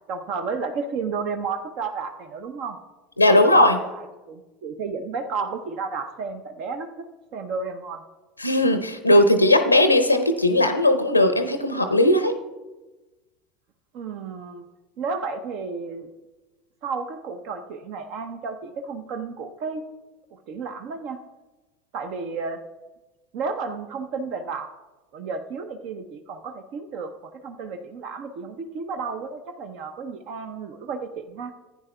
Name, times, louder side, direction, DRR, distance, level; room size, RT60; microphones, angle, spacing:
voice 1, 0.1-2.8 3.3-7.1 7.3-8.0 13.9-14.7 15.0-16.1 16.8-19.9 20.3-21.2 21.9-22.6 23.3-24.7 25.1-31.5, right 4 dB, 50° right, 8 dB, 0.6 m, -32 dB
voice 2, 3.2-3.8 8.4-12.3, left 1 dB, 90° left, 9 dB, 0.6 m, -18 dB
15.0 x 9.3 x 2.2 m, 1.1 s
figure-of-eight pair, 70°, 0 cm